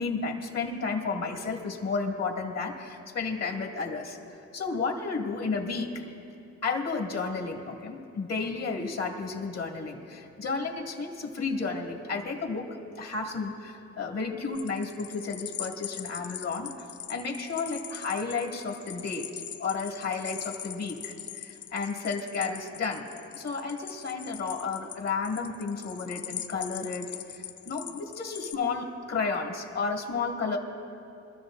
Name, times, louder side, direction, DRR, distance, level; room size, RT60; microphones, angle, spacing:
voice 1, 0.0-5.9 6.6-19.3 19.6-30.6, left 4 dB, 55° left, 1 dB, 2.1 m, -32 dB
sound 1, 14.5-28.5, left 10 dB, 70° left, 0.6 m, -41 dB
24.5 x 13.0 x 2.6 m, 2.8 s
cardioid pair, 90°, 30 cm